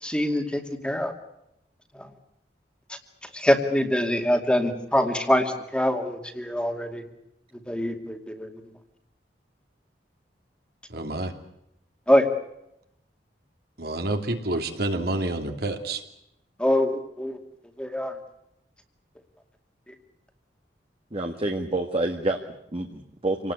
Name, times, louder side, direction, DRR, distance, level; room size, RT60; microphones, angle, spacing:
voice 1, 0.0-1.1 1.9-2.1 2.9-3.0 3.3-7.0 7.7-8.5 12.1-12.3 16.6-17.4 17.8-18.1, left 1 dB, 5° left, 5 dB, 2.4 m, -24 dB
voice 2, 10.9-11.3 13.8-16.0, right 2 dB, 60° right, 5 dB, 2.8 m, -28 dB
voice 3, 21.1-23.5, right 2 dB, 35° right, 3 dB, 1.7 m, -28 dB
27.5 x 19.0 x 8.3 m, 0.81 s
head